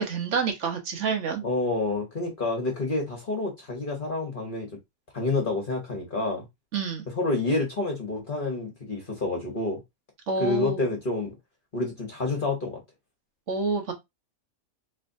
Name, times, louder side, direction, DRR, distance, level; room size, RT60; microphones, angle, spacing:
voice 1, 0.0-1.4 6.7-7.1 10.3-10.8 13.5-13.9, right 4 dB, 55° right, 1.2 m, -28 dB
voice 2, 1.4-4.7 5.1-6.5 7.1-9.8 10.4-11.3 11.7-12.8, left 2 dB, 40° left, 1.1 m, -28 dB
4.1 x 3.2 x 2.6 m
omnidirectional pair, 1.5 m